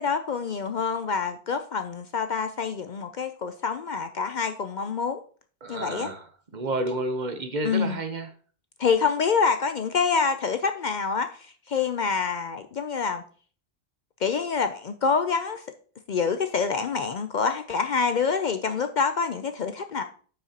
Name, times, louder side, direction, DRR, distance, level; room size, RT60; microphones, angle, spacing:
voice 1, 0.0-5.2 5.7-6.1 7.6-8.0 8.8-13.2 14.2-15.6 16.1-20.0, left 5 dB, 55° left, 0.6 m, -26 dB
voice 2, 5.6-6.2 6.5-8.3, right 2 dB, 45° right, 1.0 m, -30 dB
8.7 x 5.7 x 2.8 m
omnidirectional pair, 1.1 m